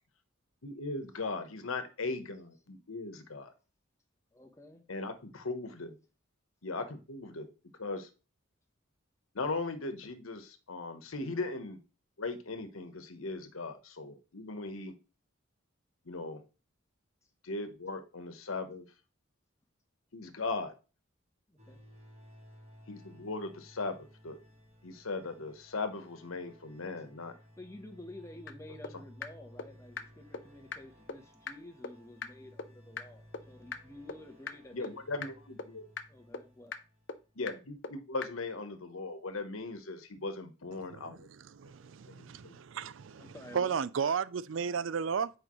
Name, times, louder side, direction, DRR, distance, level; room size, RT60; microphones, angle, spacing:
voice 1, 0.6-3.5 4.9-6.0 6.6-7.5 7.8-8.1 9.3-11.8 12.2-14.9 16.0-16.4 17.4-18.9 20.1-20.7 22.9-24.0 24.2-24.4 24.8-27.3 34.7-35.8 37.3-41.3 42.1-42.6, left 3 dB, 90° left, 1.1 m, -38 dB
voice 2, 4.3-4.8 21.5-21.8 27.6-35.3 36.1-36.7 43.2-43.8, left 1 dB, 15° left, 0.9 m, -51 dB
sound 1, 21.6-37.5, equal, 30° right, 1.7 m, -57 dB
sound 2, 28.5-28.6 28.8-28.9 29.2-29.3 29.6-29.7 30.0-30.1 30.3-30.4 30.7-30.8 31.1-31.2 31.5-31.6 31.8-31.9 32.2-32.3 32.6-32.7 33.0-33.1 33.3-33.4 33.7-33.8 34.1-34.2 34.5-34.6 34.8-34.9 35.2-35.3 35.6-35.7 36.0-36.1 36.3-36.4 36.7-36.8 37.1-37.2 37.5-37.6 37.8-37.9 38.2-38.3, left 5 dB, 55° left, 0.6 m, -37 dB
voice 3, 41.6-43.3 43.5-45.3, right 6 dB, 70° right, 0.4 m, -33 dB
8.4 x 5.1 x 3.1 m
head